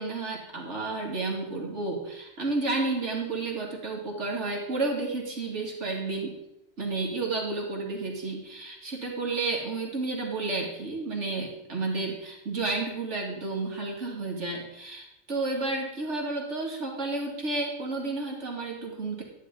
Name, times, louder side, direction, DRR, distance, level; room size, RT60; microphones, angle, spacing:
voice 1, 0.0-6.4 6.8-19.2, right 3 dB, 85° right, -1 dB, 2.5 m, -31 dB
12.5 x 9.8 x 3.7 m, 0.88 s
omnidirectional pair, 1.2 m